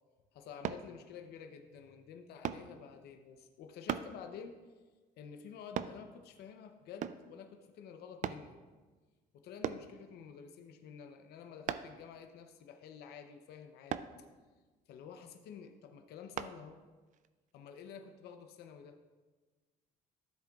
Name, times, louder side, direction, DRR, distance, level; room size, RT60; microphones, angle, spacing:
voice 1, 0.3-4.6 5.2-8.6 9.3-14.3 14.9-16.8 17.5-19.0, left 7 dB, 75° left, 5 dB, 0.7 m, -50 dB
sound 1, 0.6-0.9 2.4-2.7 3.9-4.1 5.8-6.0 7.0-7.3 8.2-8.5 9.6-9.9 11.7-12.0 13.9-14.1 16.4-16.6 17.1-17.3, right 9 dB, 50° right, 0.4 m, -37 dB
13.0 x 7.7 x 2.4 m, 1.3 s
cardioid pair, 110°, 17 cm